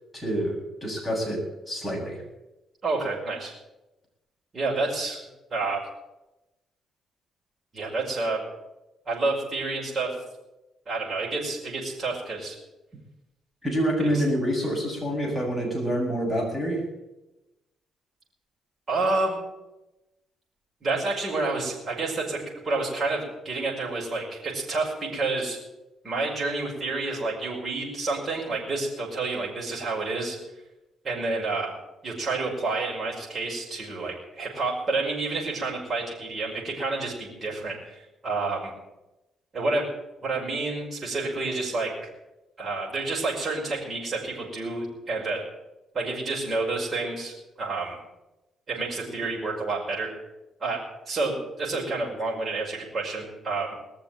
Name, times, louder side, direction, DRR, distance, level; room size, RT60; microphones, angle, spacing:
voice 1, 0.1-1.4 1.7-2.2 13.6-16.8, equal, ahead, -2 dB, 7.6 m, -27 dB
voice 2, 2.8-3.5 4.5-5.2 5.5-5.9 7.7-8.4 9.1-10.2 10.9-12.6 14.0-14.2 18.9-19.4 20.8-22.4 22.6-25.6 26.0-30.4 31.0-31.7 32.0-38.7 39.5-39.9 40.2-41.9 42.6-45.4 45.9-48.0 48.7-50.1 50.6-53.8, right 3 dB, 40° right, -4 dB, 5.6 m, -29 dB
20.5 x 6.9 x 9.1 m, 0.98 s
cardioid pair, 90°, 0 cm